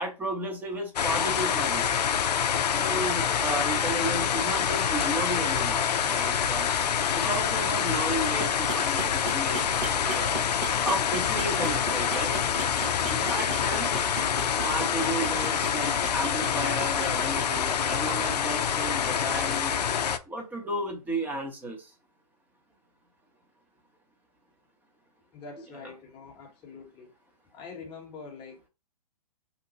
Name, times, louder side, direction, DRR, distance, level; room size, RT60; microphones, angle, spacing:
voice 1, 0.0-1.9 2.7-6.7 7.1-10.3 10.8-12.4 13.1-13.9 14.6-19.7 20.3-21.9 25.8-25.9, right 1 dB, 10° right, 0.8 m, -33 dB
sound 1, 1.0-20.2, left 8 dB, 75° left, 0.4 m, -26 dB
sound 2, 8.1-17.8, right 4 dB, 60° right, 1.0 m, -39 dB
voice 2, 25.3-27.1 27.5-28.7, left 4 dB, 20° left, 0.9 m, -44 dB
2.9 x 2.1 x 4.0 m
hypercardioid pair, 130°, 21 cm